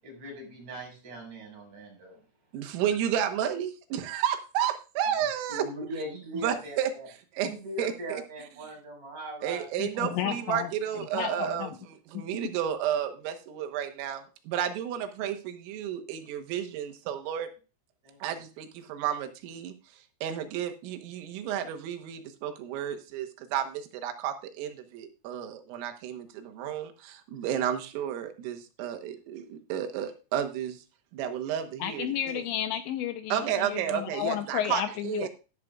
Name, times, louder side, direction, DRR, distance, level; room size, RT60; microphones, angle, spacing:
voice 1, 0.0-2.2 5.5-7.1 7.4-9.7 9.9-10.1 18.0-18.2, right 1 dB, 35° right, -1 dB, 6.8 m, -40 dB
voice 2, 2.5-5.7 6.4-6.9 7.3-7.5 7.8-8.2 8.6-8.8 9.4-17.5 18.2-30.8 31.1-32.4 33.3-35.3, right 9 dB, 90° right, 6 dB, 3.8 m, -32 dB
voice 3, 9.8-10.7 11.1-11.7 31.8-35.3, left 10 dB, 80° left, 8 dB, 2.7 m, -32 dB
13.0 x 12.5 x 2.4 m, 0.33 s
omnidirectional pair, 5.7 m